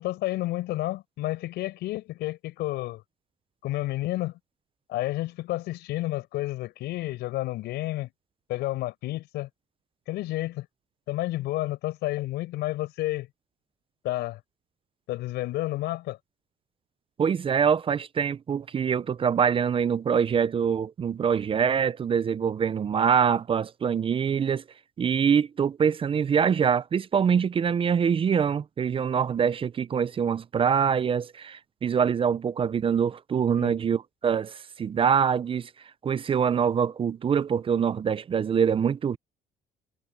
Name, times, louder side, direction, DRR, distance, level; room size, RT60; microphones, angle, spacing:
voice 1, 0.0-3.0 3.6-4.4 4.9-8.1 8.5-9.5 10.1-10.7 11.1-13.3 14.0-14.4 15.1-16.2 33.5-33.8, left 17 dB, 85° left, 5.3 m, -30 dB
voice 2, 17.2-24.6 25.0-35.7 36.0-39.2, right 7 dB, 30° right, 0.5 m, -24 dB
cardioid pair, 110°, 17 cm